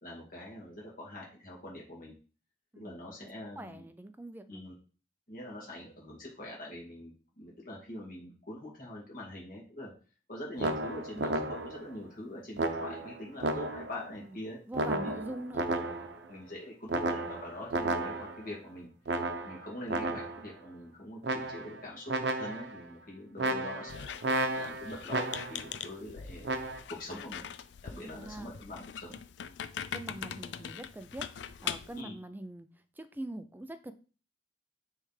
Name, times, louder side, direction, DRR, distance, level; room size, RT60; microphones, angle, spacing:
voice 1, 0.0-2.1 2.8-3.8 4.5-4.7 5.3-9.9 10.3-14.6 15.0-15.2 16.3-18.9 19.4-24.1 24.5-26.5 26.9-27.5 27.8-29.2 32.0-32.1, left 1 dB, 50° left, -4 dB, 2.0 m, -44 dB
voice 2, 2.7-3.3 3.6-4.6 14.2-14.4 14.7-15.7 27.9-28.5 29.9-32.7 33.0-33.9, right 1 dB, 10° right, 10 dB, 0.4 m, -43 dB
sound 1, 10.6-11.9 12.6-14.0 14.7-16.3 16.9-18.5 19.1-20.5 21.2-21.8 22.1-22.8 23.4-25.7 26.4-26.8, right 2 dB, 65° right, 0.7 m, -33 dB
Squeak, 23.9-32.0, left 8 dB, 75° left, 0.4 m, -42 dB
9.8 x 3.3 x 3.3 m, 0.38 s
head